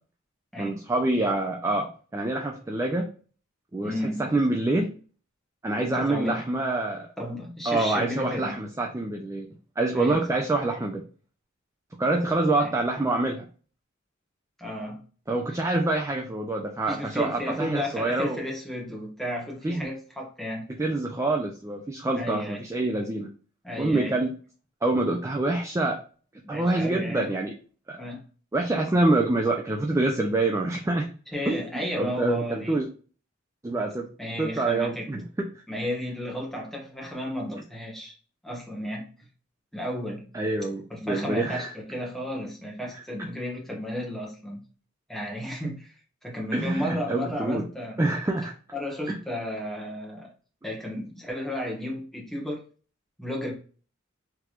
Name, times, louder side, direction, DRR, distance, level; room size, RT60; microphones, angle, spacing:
voice 1, 0.6-3.1 3.7-3.9 4.2-5.0 5.6-7.1 7.7-9.5 9.8-11.1 12.0-13.4 15.3-18.4 19.6-19.9 20.8-23.3 23.8-24.3 24.8-26.0 26.5-27.5 27.9-28.0 28.5-31.1 31.5-32.9 33.6-34.1 34.4-35.5 40.3-41.7 42.9-43.3 46.5-47.7 48.0-48.5 49.1-49.2, right 2 dB, 15° right, 2 dB, 0.4 m, -26 dB
voice 2, 3.8-4.3 5.8-6.4 7.2-8.6 9.9-10.4 12.6-12.8 14.6-15.0 16.9-20.7 22.1-22.6 23.6-24.2 26.4-27.3 28.0-28.2 31.3-32.8 34.2-35.1 35.7-38.1 38.4-39.0 39.7-40.3 40.9-44.6 45.1-46.0 46.2-48.0 48.7-50.3 50.6-52.6 53.2-53.5, left 1 dB, ahead, -2 dB, 1.1 m, -33 dB
3.3 x 2.9 x 2.3 m, 0.39 s
head